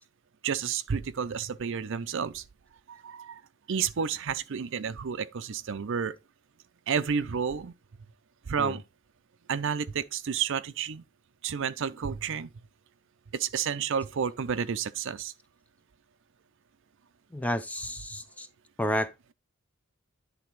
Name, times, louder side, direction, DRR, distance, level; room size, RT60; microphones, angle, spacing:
voice 1, 0.4-2.4 2.9-3.4 3.7-6.1 6.9-7.7 8.5-8.8 9.5-11.0 11.4-12.5 13.3-15.3, right 7 dB, 60° right, 0.5 m, -30 dB
voice 2, 17.3-18.5 18.8-19.1, left 1 dB, 5° left, 0.4 m, -31 dB
10.5 x 3.5 x 4.6 m
head